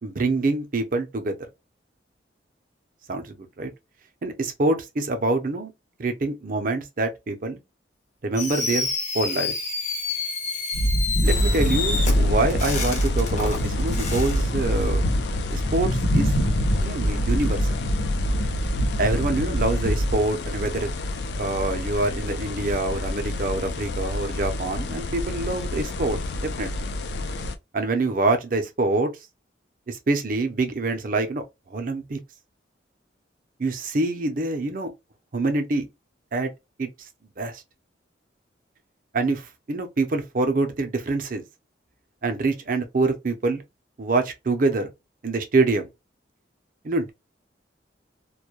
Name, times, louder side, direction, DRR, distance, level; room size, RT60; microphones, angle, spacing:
voice 1, 0.0-1.4 3.1-3.7 4.2-5.7 6.0-7.6 8.2-8.9 9.1-9.5 11.2-15.0 15.5-16.3 16.8-17.7 19.0-20.9 21.4-26.9 27.7-29.1 29.9-31.4 31.7-32.2 33.6-34.9 35.3-35.9 36.3-36.5 36.8-36.9 37.4-37.6 39.1-41.4 42.2-43.6 44.0-44.9 45.2-45.9 46.8-47.1, right 2 dB, 45° right, 0.5 m, -25 dB
Fireworks, 8.4-14.4, left 4 dB, 40° left, 0.7 m, -29 dB
sound 1, 10.7-20.2, equal, 85° left, 0.8 m, -24 dB
sound 2, 11.2-27.6, left 2 dB, 65° left, 0.3 m, -29 dB
2.2 x 2.1 x 2.8 m
head